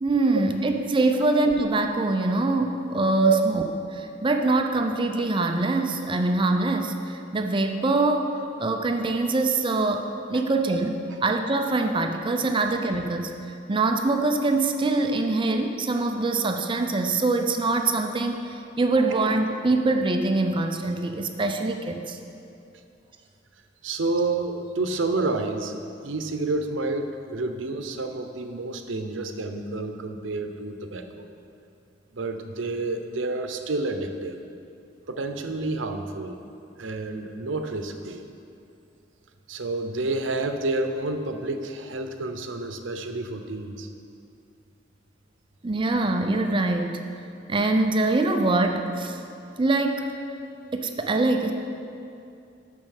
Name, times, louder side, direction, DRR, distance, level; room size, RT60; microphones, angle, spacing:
voice 1, 0.0-3.6 3.9-10.9 11.2-13.4 13.7-22.2 45.6-47.0 47.5-49.2 49.6-50.1 50.7-51.5, right 2 dB, 25° right, 5 dB, 0.5 m, -24 dB
voice 2, 23.8-25.7 26.0-31.3 32.1-34.4 35.1-36.4 36.8-38.2 39.5-43.9, right 3 dB, 85° right, 6 dB, 0.7 m, -29 dB
9.1 x 6.3 x 6.5 m, 2.6 s
head